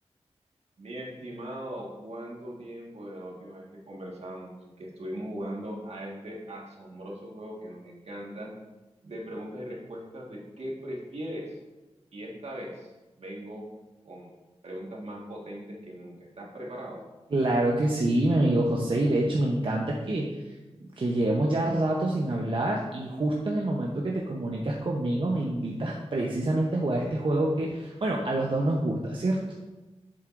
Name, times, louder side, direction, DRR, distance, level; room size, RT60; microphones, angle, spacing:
voice 1, 0.8-8.5 9.0-11.6 12.1-12.9 13.2-13.6 14.0-14.3 14.6-17.0, equal, 70° right, -2 dB, 1.6 m, -39 dB
voice 2, 17.3-29.4, right 1 dB, 50° right, -2 dB, 0.8 m, -26 dB
7.6 x 7.1 x 2.5 m, 1.1 s
wide cardioid pair, 85°, 11 cm